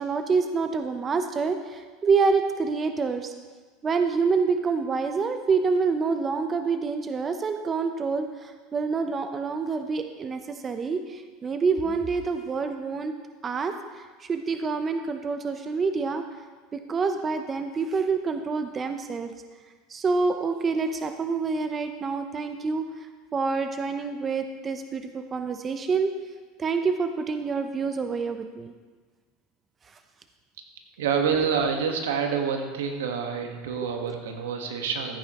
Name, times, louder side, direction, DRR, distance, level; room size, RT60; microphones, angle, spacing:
voice 1, 0.0-3.3 3.8-13.1 13.4-16.2 16.7-19.3 19.9-22.9 23.3-26.1 26.6-28.7, right 4 dB, 30° right, 7 dB, 0.7 m, -27 dB
voice 2, 31.0-35.2, right 6 dB, 85° right, 4 dB, 1.4 m, -27 dB
14.5 x 9.2 x 3.0 m, 1.4 s
supercardioid pair, 105°, 0 cm